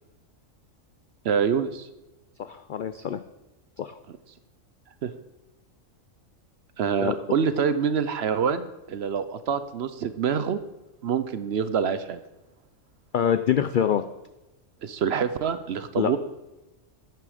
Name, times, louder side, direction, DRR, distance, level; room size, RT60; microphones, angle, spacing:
voice 1, 1.2-1.9 4.1-4.2 5.0-5.1 6.8-10.6 11.0-12.2 14.8-16.2, right 7 dB, 60° right, 12 dB, 0.8 m, -26 dB
voice 2, 2.5-3.2 3.8-4.0 7.0-7.1 13.1-14.0 16.0-16.1, left 8 dB, 70° left, 10 dB, 0.5 m, -25 dB
11.0 x 9.3 x 5.0 m, 1.0 s
omnidirectional pair, 1.4 m